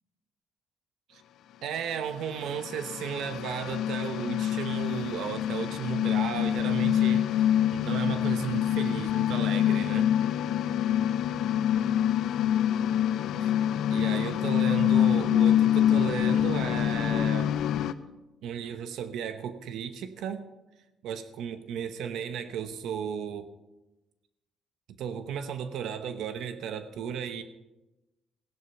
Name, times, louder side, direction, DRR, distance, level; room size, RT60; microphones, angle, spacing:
voice 1, 1.6-10.1 13.4-13.5 13.9-17.5 18.4-20.4 21.0-23.5 25.0-27.4, right 8 dB, 85° right, 10 dB, 0.9 m, -34 dB
sound 1, 2.3-17.9, left 10 dB, 80° left, 0.6 m, -26 dB
16.0 x 11.0 x 5.8 m, 1.0 s
cardioid pair, 140°, 0 cm